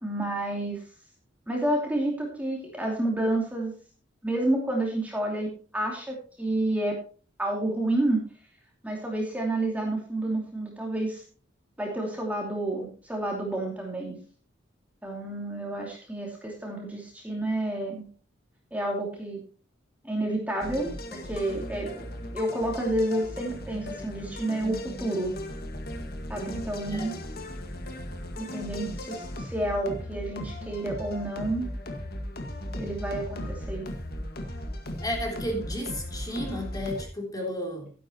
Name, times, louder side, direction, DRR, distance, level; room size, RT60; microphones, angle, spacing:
voice 1, 0.0-0.8 1.5-3.7 4.2-5.5 5.7-6.9 7.4-8.2 8.8-11.2 11.8-14.2 15.0-18.0 18.7-19.4 20.0-22.1 22.3-25.3 26.3-27.1 28.4-31.7 32.8-33.9 35.6-35.7, right 1 dB, 10° right, -1 dB, 2.7 m, -29 dB
sound 1, 20.6-37.1, left 1 dB, 55° left, 1.8 m, -37 dB
voice 2, 26.8-27.2 35.0-37.9, equal, 20° left, 0 dB, 3.3 m, -33 dB
12.5 x 10.5 x 3.0 m, 0.38 s
head